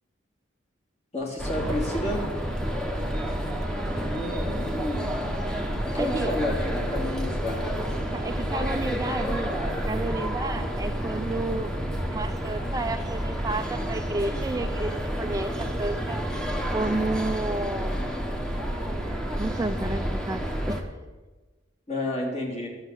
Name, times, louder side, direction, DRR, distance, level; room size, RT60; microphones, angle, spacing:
voice 1, 1.1-2.3 4.0-5.1 5.9-7.9 21.9-22.7, left 1 dB, 35° left, -2 dB, 2.8 m, -31 dB
sound 1, 1.4-20.8, equal, 5° left, 1.1 m, -29 dB
voice 2, 6.0-6.3 8.1-11.7 12.1-16.2 16.7-18.0 19.4-20.9, right 2 dB, 15° right, 7 dB, 0.4 m, -31 dB
12.0 x 7.2 x 8.1 m, 1.2 s
head